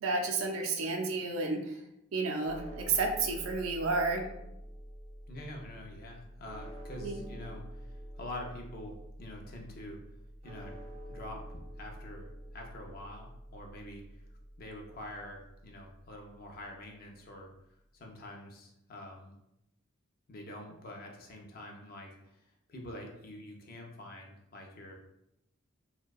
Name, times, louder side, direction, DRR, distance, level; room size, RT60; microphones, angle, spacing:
voice 1, 0.0-1.8 2.1-4.2 7.0-7.2, right 3 dB, 90° right, 3 dB, 0.4 m, -31 dB
sound 1, 2.4-16.7, equal, 30° right, 0.4 m, -47 dB
voice 2, 5.3-10.0 10.4-10.8 11.1-14.2 14.6-17.5 17.9-19.3 20.3-22.4 22.7-24.9, left 1 dB, 45° left, 1 dB, 0.4 m, -46 dB
2.6 x 2.1 x 2.2 m, 0.82 s
head